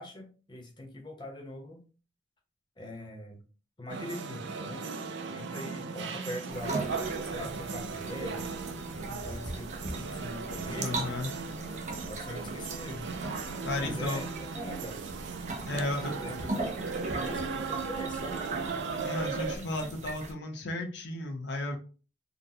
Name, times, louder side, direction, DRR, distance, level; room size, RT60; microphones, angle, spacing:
voice 1, 0.0-1.8 2.8-3.4 3.8-5.0 5.3-6.9 7.2-8.4 8.9-10.9 12.1-13.1 13.8-15.0 15.6-16.8 17.1-18.4 19.5-19.9, left 1 dB, 25° left, 1 dB, 0.7 m, -42 dB
sound 1, 3.9-19.6, right 4 dB, 90° right, 0.4 m, -37 dB
sound 2, 6.5-20.3, right 3 dB, 40° right, 0.6 m, -40 dB
voice 2, 10.8-11.3 13.6-14.2 15.7-16.1 19.0-21.8, left 2 dB, 85° left, 3 dB, 0.8 m, -34 dB
3.9 x 2.1 x 2.7 m, 0.36 s
head